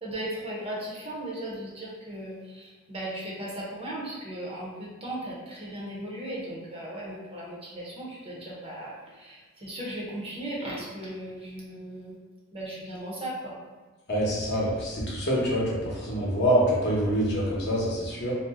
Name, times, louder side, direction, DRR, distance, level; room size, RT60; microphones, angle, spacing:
voice 1, 0.0-12.2 12.5-13.6, right 1 dB, 25° right, -5 dB, 0.5 m, -37 dB
voice 2, 14.1-18.4, equal, 50° left, -5 dB, 0.8 m, -26 dB
2.6 x 2.0 x 3.5 m, 1.3 s
head